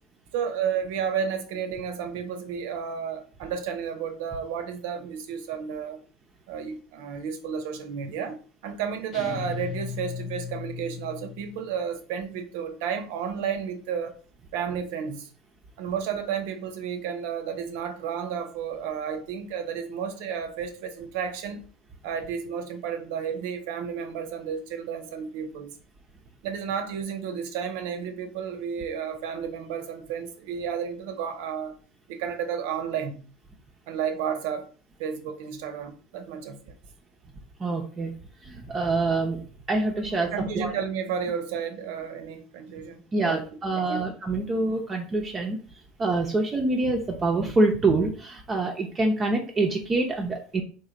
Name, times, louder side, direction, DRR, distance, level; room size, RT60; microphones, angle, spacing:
voice 1, 0.3-6.0 6.5-14.1 14.5-15.3 15.8-21.6 22.0-25.8 26.4-31.8 32.1-33.3 33.9-34.7 35.0-36.7 40.3-43.4 43.8-44.0, right 7 dB, 75° right, 0.7 m, -32 dB
sound 1, 9.1-11.7, left 6 dB, 45° left, 0.7 m, -36 dB
voice 2, 37.6-38.1 38.4-39.4 39.7-40.7 43.1-45.6 46.0-50.6, right 2 dB, 25° right, 0.6 m, -26 dB
3.2 x 2.2 x 3.8 m
supercardioid pair, 100°, 0 cm